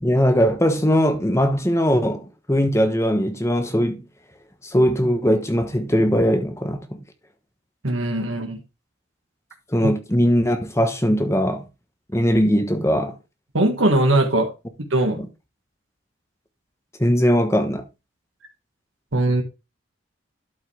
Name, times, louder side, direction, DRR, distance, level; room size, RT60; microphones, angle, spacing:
voice 1, 0.0-4.0 4.6-7.0 9.7-11.6 12.1-13.2 15.2-15.3 17.0-17.8, equal, 15° left, 1.1 m, -20 dB
voice 2, 7.8-8.6 9.8-9.9 13.5-14.5 14.9-15.2 19.1-19.4, right 1 dB, 85° right, 1.8 m, -20 dB
12.0 x 5.6 x 3.4 m
head